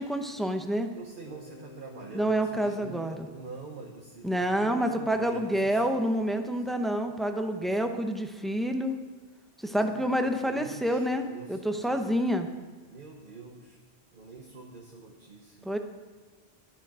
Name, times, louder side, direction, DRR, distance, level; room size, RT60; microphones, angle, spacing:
voice 1, 0.0-0.9 2.1-3.2 4.2-9.0 9.6-12.5 15.6-15.8, equal, ahead, 5 dB, 0.8 m, -28 dB
voice 2, 0.9-5.9 6.6-6.7 7.6-7.9 9.6-12.1 12.9-13.8 14.1-15.7, right 4 dB, 50° right, 0 dB, 1.3 m, -46 dB
Bass guitar, 1.3-5.2, left 3 dB, 65° left, 2.4 m, -53 dB
12.0 x 10.5 x 6.3 m, 1.4 s
omnidirectional pair, 1.1 m